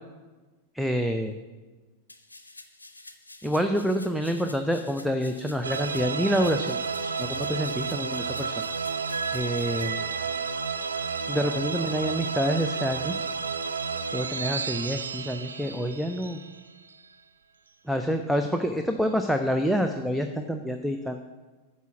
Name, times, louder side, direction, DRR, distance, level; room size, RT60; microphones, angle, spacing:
voice 1, 0.7-1.3 3.4-8.6 9.3-10.0 11.3-13.3 14.1-16.4 17.9-21.2, equal, ahead, 5 dB, 0.4 m, -27 dB
sound 1, 2.1-9.8, left 2 dB, 80° left, 0.6 m, -48 dB
sound 2, 5.6-17.0, right 5 dB, 70° right, 0.4 m, -31 dB
8.1 x 4.2 x 7.1 m, 1.3 s
figure-of-eight pair, 90°, 0 cm